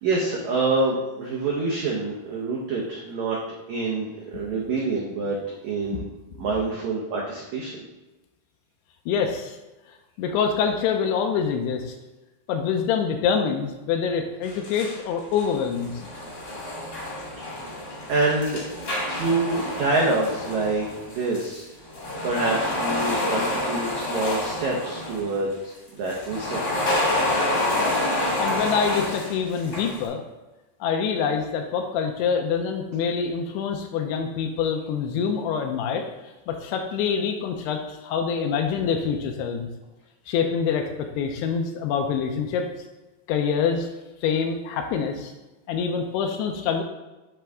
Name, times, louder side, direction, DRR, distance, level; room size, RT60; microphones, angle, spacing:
voice 1, 0.0-3.4 3.7-5.4 5.6-6.0 6.4-7.7 17.4-17.5 18.1-21.7 22.2-26.6, right 3 dB, 80° right, -3 dB, 1.7 m, -26 dB
voice 2, 9.1-9.6 10.2-11.9 12.5-16.1 28.4-30.2 30.8-36.1 36.5-39.7 40.3-42.7 43.3-43.9 44.2-45.3 45.7-46.8, left 6 dB, 85° left, 3 dB, 2.7 m, -25 dB
sound 1, 14.4-15.0 15.3-21.6 21.9-25.3 26.1-30.0, left 1 dB, 45° left, 1.2 m, -28 dB
10.0 x 3.9 x 3.5 m, 1.1 s
omnidirectional pair, 4.7 m